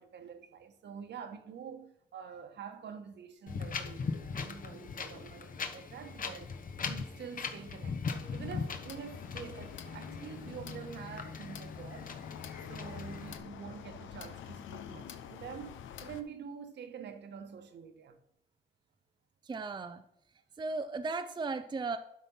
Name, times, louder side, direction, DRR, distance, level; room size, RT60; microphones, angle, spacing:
voice 1, 0.0-6.6 6.8-12.1 12.7-18.2, right 7 dB, 60° right, 1.3 m, -46 dB
Wind, 3.5-13.4, left 5 dB, 45° left, 1.1 m, -40 dB
sound 1, 8.1-16.2, left 9 dB, 75° left, 0.8 m, -47 dB
voice 2, 19.5-20.0 20.6-22.0, right 3 dB, 20° right, 0.5 m, -36 dB
12.0 x 4.4 x 5.5 m
cardioid pair, 90°, 20 cm